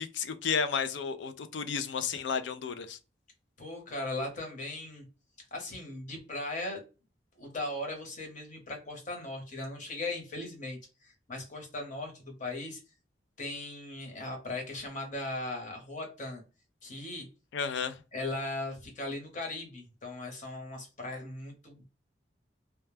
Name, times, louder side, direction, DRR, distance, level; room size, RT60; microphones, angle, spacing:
voice 1, 0.0-3.0 17.5-18.0, left 6 dB, 80° left, 0.4 m, -32 dB
voice 2, 3.6-5.0 5.5-6.8 7.4-10.8 11.0-12.8 13.4-16.4 16.8-17.3 18.1-21.8, left 2 dB, 45° left, 1.0 m, -38 dB
2.2 x 2.2 x 3.2 m
head